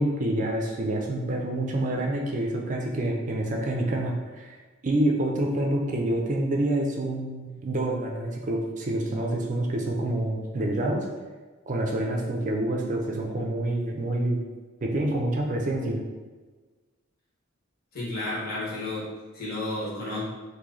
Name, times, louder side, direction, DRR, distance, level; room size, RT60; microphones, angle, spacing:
voice 1, 0.0-4.6 4.8-11.1 11.7-14.4 14.8-16.0, right 1 dB, 40° right, 0 dB, 0.5 m, -27 dB
voice 2, 17.9-19.1 19.3-20.3, left 2 dB, 50° left, -7 dB, 1.3 m, -31 dB
3.0 x 2.7 x 3.8 m, 1.3 s
head